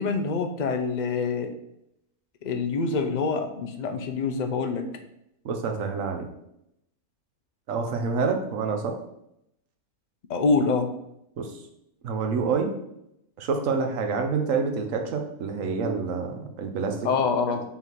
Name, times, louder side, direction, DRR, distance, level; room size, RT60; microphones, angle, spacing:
voice 1, 0.0-1.5 2.4-4.8 10.3-10.9 17.0-17.6, left 4 dB, 50° left, 6 dB, 0.5 m, -25 dB
voice 2, 5.4-6.3 7.7-9.0 11.4-11.5 12.0-12.7 13.4-17.6, right 5 dB, 65° right, 4 dB, 1.2 m, -28 dB
5.7 x 3.7 x 4.6 m, 0.79 s
omnidirectional pair, 1.5 m